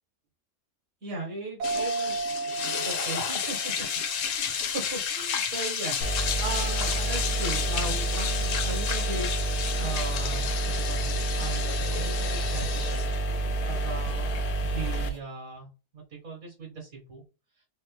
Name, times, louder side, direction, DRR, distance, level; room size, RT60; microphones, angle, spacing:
voice 1, 1.0-3.7 4.2-9.3 9.7-13.1 13.6-15.7 15.9-17.2, right 3 dB, 55° right, -2 dB, 2.1 m, -38 dB
sound 1, 1.6-15.2, left 7 dB, 60° left, 1.0 m, -32 dB
sound 2, 1.6-4.9, right 3 dB, 80° right, 1.7 m, -34 dB
sound 3, 6.0-15.1, right 2 dB, 90° left, 1.4 m, -29 dB
4.5 x 2.8 x 3.2 m, 0.31 s
omnidirectional pair, 1.7 m